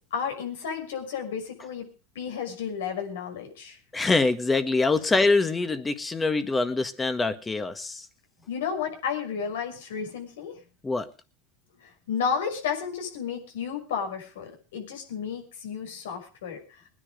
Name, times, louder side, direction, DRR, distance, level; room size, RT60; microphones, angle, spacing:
voice 1, 0.1-1.9 2.1-3.8 8.5-10.6 12.1-16.6, left 6 dB, 85° left, 4 dB, 6.2 m, -32 dB
voice 2, 3.9-8.0 10.8-11.1, left 3 dB, 15° left, 10 dB, 1.6 m, -24 dB
20.5 x 10.0 x 5.2 m, 0.35 s
supercardioid pair, 125°, 0 cm